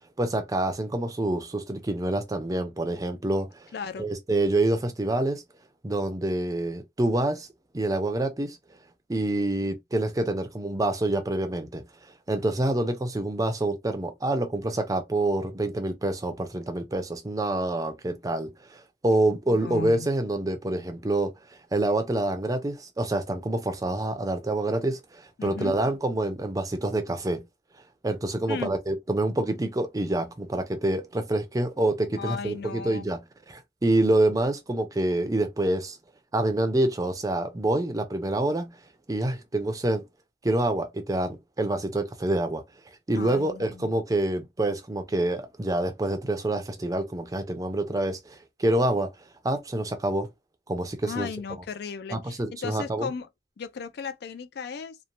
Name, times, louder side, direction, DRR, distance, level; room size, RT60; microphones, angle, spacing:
voice 1, 0.2-3.7 4.0-5.4 5.8-7.5 7.7-8.6 9.1-11.8 12.3-21.3 21.7-27.4 28.0-36.0 36.3-38.8 39.1-40.0 40.4-42.6 43.1-49.1 49.4-50.3 50.7-51.3 52.1-53.1, right 1 dB, 20° right, 0.5 m, -27 dB
voice 2, 3.7-4.1 19.5-20.1 25.4-25.8 28.5-28.7 32.2-33.1 43.2-43.9 51.0-53.3 53.6-55.0, left 5 dB, 60° left, 0.4 m, -36 dB
2.9 x 2.1 x 2.5 m
head